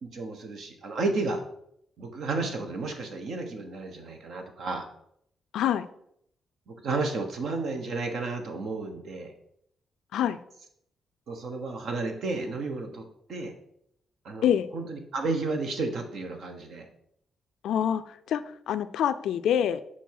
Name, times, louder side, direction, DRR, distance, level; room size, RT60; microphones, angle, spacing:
voice 1, 0.0-1.4 2.0-4.9 6.7-9.3 11.3-13.5 14.2-14.5 14.7-16.9, right 3 dB, 70° right, 5 dB, 1.2 m, -32 dB
voice 2, 5.5-5.9 10.1-10.4 14.4-14.7 17.6-19.8, left 9 dB, 85° left, 12 dB, 0.3 m, -26 dB
6.8 x 4.3 x 4.7 m, 0.72 s
cardioid pair, 85°, 0 cm